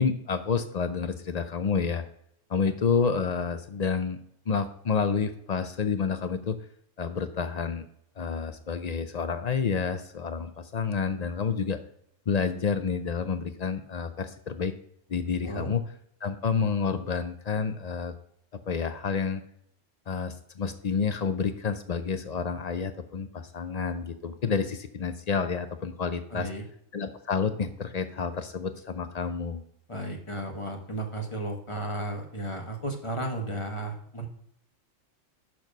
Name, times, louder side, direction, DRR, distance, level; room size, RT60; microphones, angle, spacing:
voice 1, 0.0-2.0 2.5-4.2 4.5-6.6 7.0-7.9 8.2-11.8 12.3-14.7 15.1-15.8 16.2-18.1 18.7-19.4 20.1-26.5 26.9-29.6, left 5 dB, 55° left, 10 dB, 0.4 m, -29 dB
voice 2, 26.3-26.6 29.9-34.3, right 1 dB, 25° left, 3 dB, 1.0 m, -34 dB
6.9 x 6.0 x 5.2 m, 0.71 s
omnidirectional pair, 1.3 m